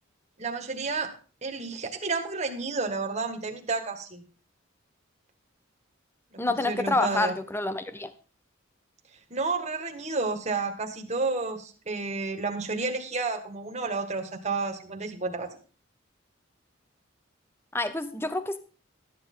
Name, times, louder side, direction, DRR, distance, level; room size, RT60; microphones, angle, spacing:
voice 1, 0.4-1.1 1.4-4.2 6.3-7.4 9.3-15.5, right 3 dB, 35° right, 4 dB, 1.8 m, -31 dB
voice 2, 6.4-8.1 17.7-18.6, left 2 dB, 10° left, 11 dB, 0.6 m, -28 dB
13.0 x 9.9 x 3.9 m, 0.37 s
head